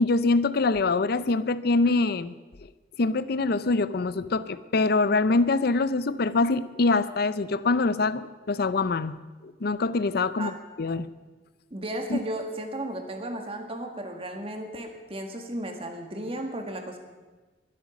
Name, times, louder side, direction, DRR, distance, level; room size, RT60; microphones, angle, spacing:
voice 1, 0.0-2.3 3.0-10.5 10.8-11.1 12.1-12.2, left 3 dB, 55° left, 14 dB, 0.5 m, -24 dB
voice 2, 11.7-17.0, right 1 dB, 30° right, 4 dB, 1.7 m, -34 dB
22.0 x 8.3 x 6.1 m, 1.3 s
head